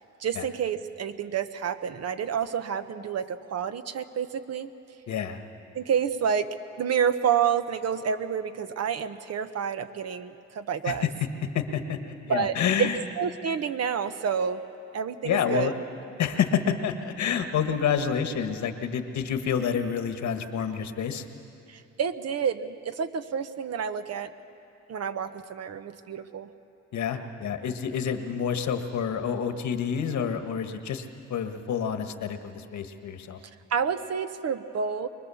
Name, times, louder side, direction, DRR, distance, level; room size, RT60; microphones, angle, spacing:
voice 1, 0.2-4.7 5.7-6.5 6.8-11.1 12.3-12.9 13.2-14.6 14.9-15.7 21.7-24.3 24.9-26.5 33.7-35.1, right 7 dB, 55° right, 10 dB, 1.0 m, -29 dB
voice 2, 5.1-5.4 10.8-11.3 11.5-13.0 15.2-15.7 16.2-21.2 26.9-31.0 31.3-33.4, left 7 dB, 70° left, 7 dB, 1.6 m, -28 dB
24.0 x 21.0 x 7.1 m, 2.8 s
cardioid pair, 90°, 30 cm